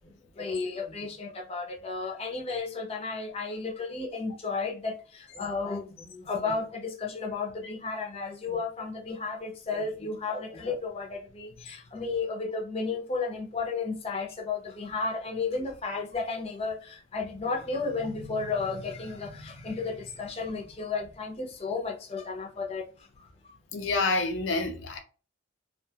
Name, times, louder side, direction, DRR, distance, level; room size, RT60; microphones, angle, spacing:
voice 1, 0.4-22.8 23.2-23.5, left 4 dB, 35° left, 0.7 m, -33 dB
voice 2, 23.7-25.0, left 3 dB, 80° left, 0.5 m, -28 dB
2.5 x 2.3 x 2.7 m
head